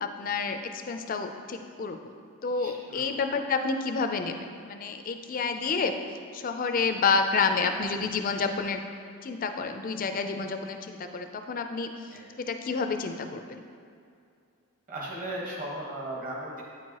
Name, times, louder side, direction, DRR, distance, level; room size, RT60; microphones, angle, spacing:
voice 1, 0.0-2.0 2.4-4.3 4.6-5.9 6.3-8.8 9.2-11.9 12.4-13.6, left 4 dB, 40° left, 6 dB, 0.3 m, -29 dB
voice 2, 2.5-3.4 12.1-12.3 14.9-16.6, right 1 dB, 40° right, -4 dB, 1.2 m, -37 dB
9.0 x 4.6 x 2.9 m, 2.4 s
head